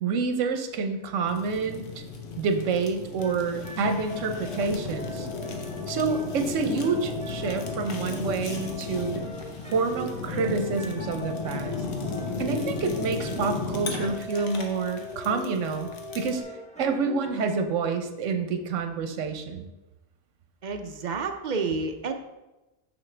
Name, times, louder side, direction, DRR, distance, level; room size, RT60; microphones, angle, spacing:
voice 1, 0.0-1.8 2.4-5.3 5.9-9.2 9.7-11.8 12.4-15.9 16.1-16.4 16.8-19.7, right 4 dB, 80° right, 6 dB, 1.1 m, -28 dB
Fire, 1.3-16.4, left 4 dB, 80° left, 1.2 m, -35 dB
sound 1, 3.2-17.4, left 2 dB, 5° left, 1.1 m, -40 dB
voice 2, 20.6-22.1, right 4 dB, 55° right, 6 dB, 0.5 m, -30 dB
6.1 x 6.1 x 3.3 m, 1.0 s
omnidirectional pair, 1.3 m